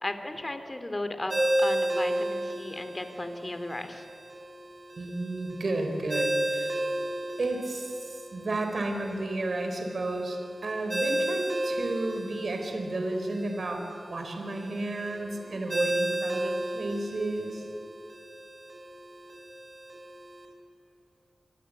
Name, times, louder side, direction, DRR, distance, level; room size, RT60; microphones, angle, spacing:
voice 1, 0.0-1.3 1.6-4.0, left 1 dB, 25° left, 8 dB, 2.8 m, -35 dB
Ringtone, 1.3-20.4, right 1 dB, 40° right, 6.5 m, -33 dB
voice 2, 5.0-6.8 7.4-13.8 14.1-17.6, right 2 dB, 65° right, 4 dB, 4.4 m, -32 dB
26.0 x 24.5 x 8.7 m, 2.5 s
wide cardioid pair, 85°, 0 cm